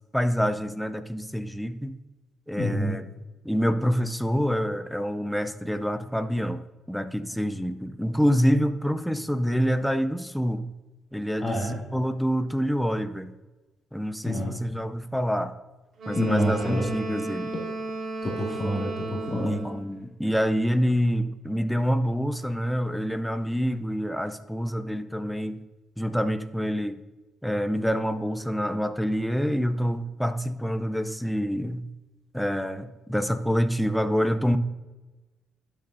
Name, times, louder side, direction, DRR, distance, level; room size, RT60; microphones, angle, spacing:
voice 1, 0.1-2.0 2.5-3.0 3.4-6.6 6.9-10.6 11.1-13.3 13.9-15.5 16.1-17.5 19.3-25.6 26.0-27.0 27.4-31.8 32.3-34.6, equal, ahead, 10 dB, 0.6 m, -26 dB
voice 2, 2.6-3.0 11.4-11.8 14.2-14.6 16.1-16.8 18.2-19.6, equal, 20° left, -4 dB, 2.2 m, -27 dB
Wind instrument woodwind instrument, 16.0-19.9, right 2 dB, 55° right, 2.6 m, -34 dB
11.5 x 6.7 x 2.7 m, 1.1 s
cardioid pair, 90°, 0 cm